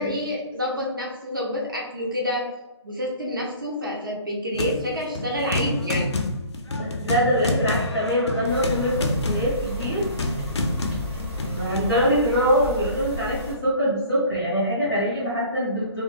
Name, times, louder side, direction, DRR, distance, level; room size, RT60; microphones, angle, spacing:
voice 1, 0.0-2.5 2.8-6.1, left 1 dB, 45° right, -2 dB, 0.7 m, -28 dB
sound 1, 4.5-4.9 5.2-11.9, left 2 dB, 65° left, 0.4 m, -28 dB
voice 2, 6.8-10.0 11.2-16.0, equal, 5° left, -15 dB, 0.6 m, -24 dB
sound 2, 8.5-13.5, left 1 dB, 25° right, 1.1 m, -34 dB
3.1 x 2.2 x 2.4 m, 1.0 s
hypercardioid pair, 180°, 15 cm